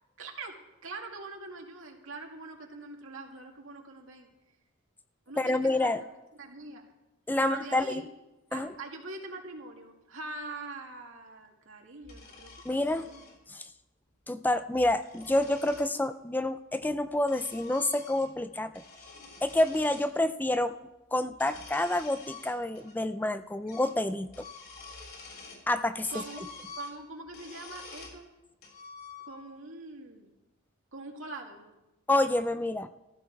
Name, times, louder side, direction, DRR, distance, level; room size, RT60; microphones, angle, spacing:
voice 1, 0.2-0.6 0.8-4.3 5.3-6.1 6.4-6.8 7.4-8.1 8.5-13.3 18.6-18.7 26.1-28.3 29.2-30.3 30.9-31.7, right 3 dB, 85° right, 1 dB, 2.3 m, -43 dB
voice 2, 5.4-6.0 7.3-8.0 8.5-8.7 12.7-13.0 13.5-13.7 14.3-18.8 19.4-20.8 21.1-24.3 25.7-26.2 32.1-32.9, left 1 dB, 10° left, 11 dB, 0.4 m, -28 dB
sound 1, 12.0-13.4 14.6-15.9 16.8-18.4 18.7-20.1 21.3-23.0 23.2-23.3 23.7-24.0 24.3-25.7 26.0-28.2 28.6-29.6, left 4 dB, 55° left, 3.6 m, -48 dB
15.0 x 14.5 x 4.6 m, 0.98 s
head